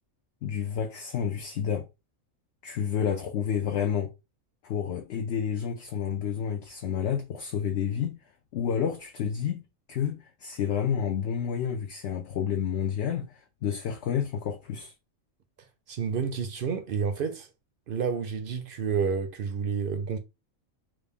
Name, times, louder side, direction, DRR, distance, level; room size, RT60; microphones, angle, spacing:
voice 1, 0.4-1.8 2.6-4.1 4.6-8.2 8.5-9.6 9.9-14.9, left 8 dB, 65° left, 0.8 m, -30 dB
voice 2, 15.9-17.5 17.9-20.2, right 6 dB, 60° right, 0.6 m, -29 dB
3.1 x 2.5 x 3.5 m
omnidirectional pair, 1.3 m